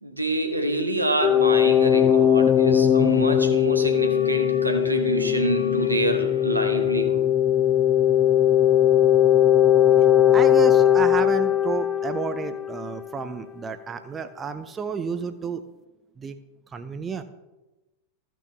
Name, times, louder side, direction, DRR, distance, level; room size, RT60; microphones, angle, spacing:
voice 1, 0.0-7.2, right 1 dB, 85° right, 5 dB, 1.3 m, -27 dB
sound 1, 1.2-12.8, left 10 dB, 20° left, 0.6 m, -19 dB
sound 2, 3.1-3.4 3.6-10.3, left 4 dB, 70° left, 1.0 m, -39 dB
voice 2, 10.3-15.6 16.2-16.4 16.7-17.2, right 5 dB, 20° right, 10 dB, 0.5 m, -31 dB
14.5 x 6.0 x 3.5 m, 1.1 s
figure-of-eight pair, 90°, 0 cm